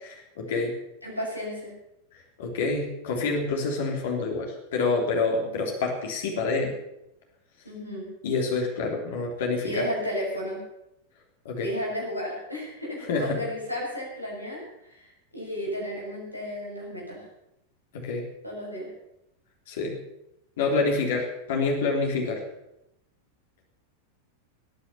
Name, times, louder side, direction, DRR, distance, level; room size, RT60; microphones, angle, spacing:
voice 1, 0.4-0.7 2.1-6.7 8.2-9.8 11.4-11.7 13.1-13.4 17.9-18.2 19.7-20.0 20.6-22.4, left 3 dB, 55° left, 1 dB, 3.5 m, -27 dB
voice 2, 1.0-1.7 5.4-5.6 7.6-8.1 9.6-10.6 11.6-17.2 18.4-18.9, equal, 90° left, -3 dB, 6.5 m, -33 dB
18.0 x 9.9 x 7.1 m, 0.84 s
figure-of-eight pair, 90°, 0 cm